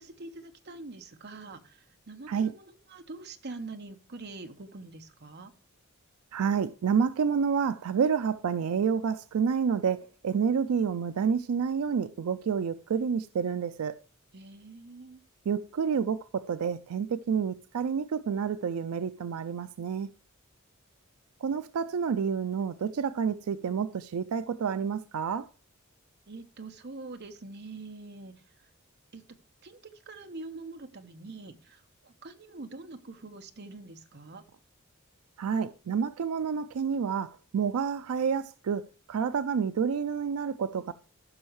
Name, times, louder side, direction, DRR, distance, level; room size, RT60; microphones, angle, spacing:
voice 1, 0.0-5.5 14.3-15.2 26.3-28.7 29.1-29.2 29.6-29.8 30.1-34.4, right 3 dB, 50° right, 1.0 m, -44 dB
voice 2, 6.3-14.0 15.5-20.1 21.4-25.5 35.4-38.8 39.1-40.9, right 6 dB, 90° right, 0.4 m, -29 dB
15.0 x 6.3 x 3.1 m
head